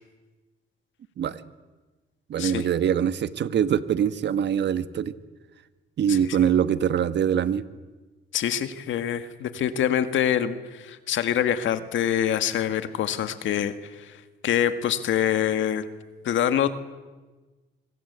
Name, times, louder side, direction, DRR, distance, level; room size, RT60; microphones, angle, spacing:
voice 1, 2.3-5.1 6.0-7.6, right 9 dB, 60° right, 13 dB, 1.4 m, -23 dB
voice 2, 8.3-14.2 14.4-15.9 16.2-16.8, left 10 dB, 75° left, 10 dB, 1.9 m, -25 dB
25.5 x 24.5 x 8.2 m, 1.2 s
cardioid pair, 90°, 20 cm